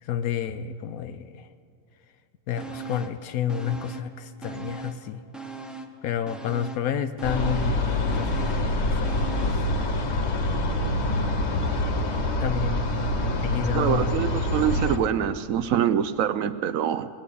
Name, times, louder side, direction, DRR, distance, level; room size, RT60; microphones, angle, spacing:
voice 1, 0.0-1.5 2.5-5.2 6.0-9.5 12.4-12.9 13.4-14.1, left 8 dB, 75° left, 10 dB, 1.0 m, -30 dB
sound 1, 2.6-3.2 3.5-5.1 5.3-9.7 10.1-10.2, right 4 dB, ahead, 0.5 m, -39 dB
sound 2, 7.2-15.0, left 1 dB, 50° left, 1.3 m, -25 dB
voice 2, 13.7-17.1, right 9 dB, 70° right, 12 dB, 0.9 m, -25 dB
19.5 x 8.4 x 8.4 m, 2.4 s
omnidirectional pair, 1.6 m